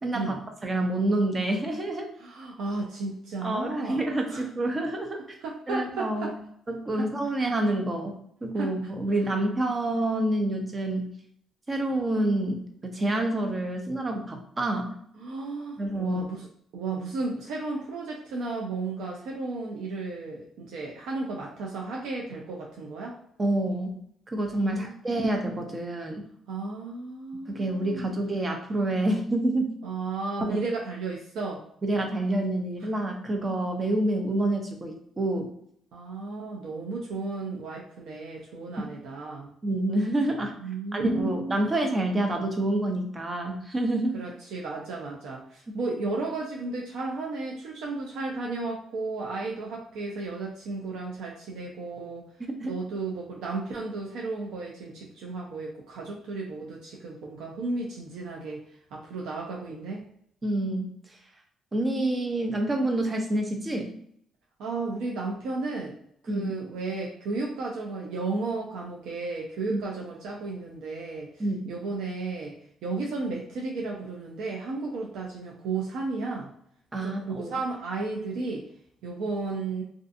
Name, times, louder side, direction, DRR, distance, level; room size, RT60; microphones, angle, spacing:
voice 1, 0.0-2.1 3.4-5.2 5.7-6.3 6.7-11.1 11.7-14.9 15.8-16.2 23.4-24.0 24.3-26.2 27.5-29.7 30.4-30.6 31.8-35.5 38.8-38.9 39.6-40.6 40.9-44.2 52.4-52.7 60.4-60.8 61.7-63.9 66.3-66.5 69.7-69.8 71.4-71.6 76.9-77.5, right 1 dB, 30° right, 3 dB, 0.6 m, -28 dB
voice 2, 2.2-4.5 5.4-6.3 6.9-7.1 8.6-8.9 9.3-9.4 15.2-16.5 16.7-23.2 24.6-25.0 26.5-28.1 29.8-31.6 35.9-39.5 40.6-41.6 44.1-52.2 52.6-58.6 58.9-60.0 64.6-66.0 66.2-72.6 72.8-76.5 77.0-78.7 79.0-79.8, right 3 dB, 85° right, -2 dB, 0.4 m, -34 dB
2.5 x 2.4 x 2.5 m, 0.68 s
cardioid pair, 90°, 0 cm